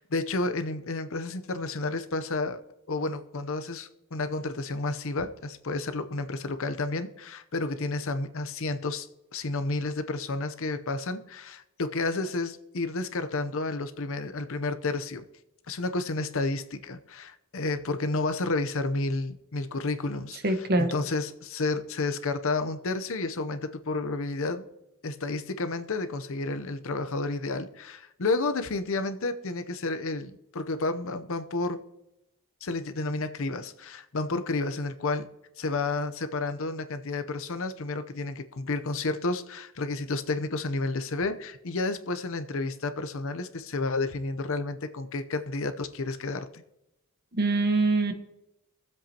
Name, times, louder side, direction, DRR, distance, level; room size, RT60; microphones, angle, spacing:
voice 1, 0.0-2.6 2.9-9.1 9.3-15.2 15.7-24.6 25.0-31.8 32.6-35.3 35.6-46.5, left 3 dB, 60° left, 10 dB, 0.8 m, -31 dB
voice 2, 20.4-20.9 47.3-48.1, right 2 dB, 45° right, 7 dB, 1.2 m, -24 dB
22.5 x 7.7 x 2.9 m, 0.91 s
head